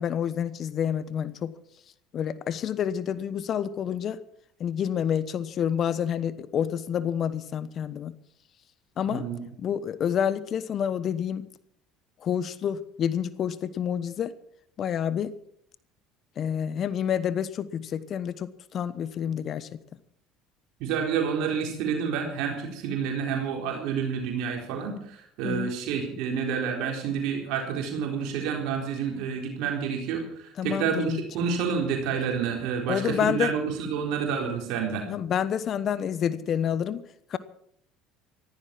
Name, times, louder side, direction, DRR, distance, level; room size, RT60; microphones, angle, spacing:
voice 1, 0.0-1.5 2.1-4.2 4.6-8.2 9.0-9.3 9.6-11.5 12.2-14.3 14.8-15.3 16.4-19.7 25.4-25.7 30.6-31.2 32.9-33.5 35.1-37.0 37.3-37.4, left 8 dB, 50° left, 15 dB, 1.0 m, -28 dB
voice 2, 9.1-9.4 20.8-35.0, right 6 dB, 70° right, 1 dB, 4.1 m, -29 dB
15.5 x 14.0 x 6.1 m, 0.69 s
hypercardioid pair, 75°, 0 cm